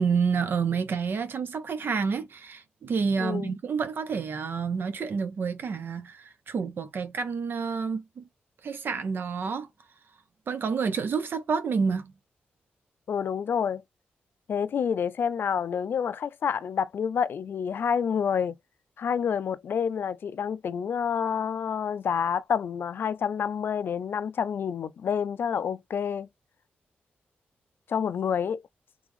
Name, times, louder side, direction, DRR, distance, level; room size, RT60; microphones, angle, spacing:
voice 1, 0.0-8.2 8.6-9.7 10.5-12.1, right 5 dB, 65° right, 0.8 m, -29 dB
voice 2, 3.2-3.5 13.1-13.8 14.5-18.5 19.0-26.3 27.9-28.6, left 7 dB, 70° left, 0.3 m, -28 dB
3.4 x 3.4 x 3.5 m
cardioid pair, 85°, 4 cm